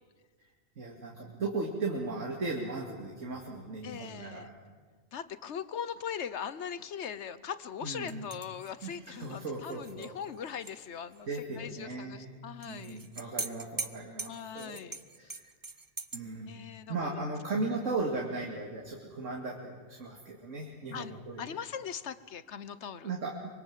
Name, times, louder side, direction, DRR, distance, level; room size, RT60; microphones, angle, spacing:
voice 1, 0.8-4.6 7.8-8.3 8.8-10.1 11.3-14.8 15.2-15.5 16.1-21.5 23.0-23.5, right 3 dB, 70° right, 0 dB, 2.6 m, -37 dB
voice 2, 3.8-4.5 5.1-11.3 11.6-13.0 14.3-15.4 16.5-17.2 20.9-21.1 21.4-23.1, left 8 dB, 60° left, 15 dB, 1.2 m, -40 dB
sound 1, 8.1-10.8 11.1-11.2 12.6-16.2, right 3 dB, 25° right, 0.5 m, -42 dB
24.5 x 23.0 x 7.5 m, 1.5 s
omnidirectional pair, 1.3 m